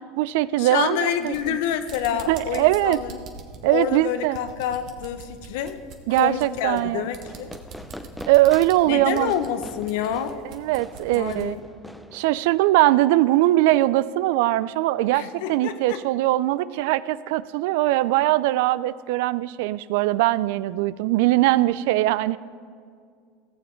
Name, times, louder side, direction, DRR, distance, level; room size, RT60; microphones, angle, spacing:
voice 1, 0.0-1.6 2.3-3.0 3.6-4.4 6.1-7.1 8.3-9.3 10.4-11.5 12.1-22.4, right 16 dB, 70° right, 18 dB, 0.3 m, -21 dB
voice 2, 0.6-3.2 3.7-5.8 6.1-7.5 8.9-10.4 11.1-11.6 15.1-16.0, left 9 dB, 70° left, 10 dB, 0.8 m, -28 dB
sound 1, 1.1-11.5, right 5 dB, 55° right, 1.4 m, -43 dB
Fireworks, 7.2-12.7, equal, ahead, 0.6 m, -43 dB
16.5 x 7.2 x 4.4 m, 2.1 s
hypercardioid pair, 90°, 0 cm